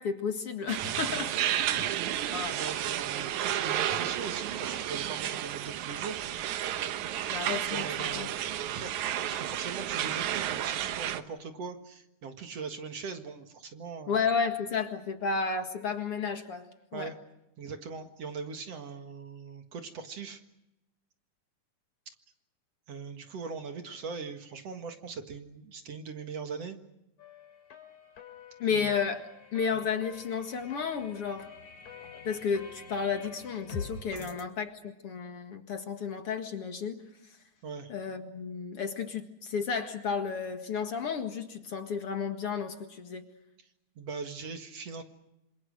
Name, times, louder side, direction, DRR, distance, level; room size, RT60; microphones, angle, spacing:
voice 1, 0.0-1.3 2.3-2.5 7.3-8.3 14.1-17.1 28.6-29.3 29.5-31.5 32.1-37.4 37.9-43.3, left 6 dB, 50° left, 6 dB, 2.5 m, -32 dB
sound 1, 0.7-11.2, right 11 dB, 75° right, 2.4 m, -32 dB
voice 2, 0.8-1.3 1.7-2.2 2.5-6.2 7.7-14.3 16.9-17.2 17.6-20.4 22.9-26.8 28.7-28.9 29.7-29.8 34.1-34.3 37.6-37.9 44.0-45.0, right 5 dB, 55° right, 6 dB, 2.6 m, -41 dB
sound 2, 27.2-34.4, left 5 dB, 70° left, 4.2 m, -46 dB
27.0 x 27.0 x 6.5 m, 0.90 s
omnidirectional pair, 3.6 m